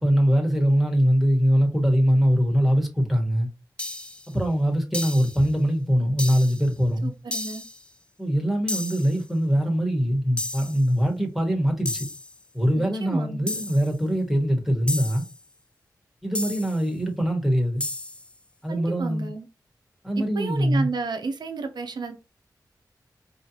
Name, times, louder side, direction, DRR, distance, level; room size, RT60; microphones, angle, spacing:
voice 1, 0.0-3.5 4.3-7.1 8.2-12.1 12.5-15.2 16.2-17.8 18.6-19.3 20.0-20.9, equal, 5° right, 1.2 m, -22 dB
sound 1, 3.8-4.3 4.9-5.5 6.2-6.7 7.3-7.8 8.7-9.2 10.4-10.9 11.8-12.4 13.5-13.9 14.9-15.4 16.3-16.8 17.8-18.3, left 2 dB, 15° left, 0.4 m, -33 dB
voice 2, 7.0-7.6 12.8-13.5 18.7-19.5 20.2-22.1, right 4 dB, 80° right, 0.7 m, -32 dB
4.7 x 2.8 x 2.8 m
wide cardioid pair, 85°, 7 cm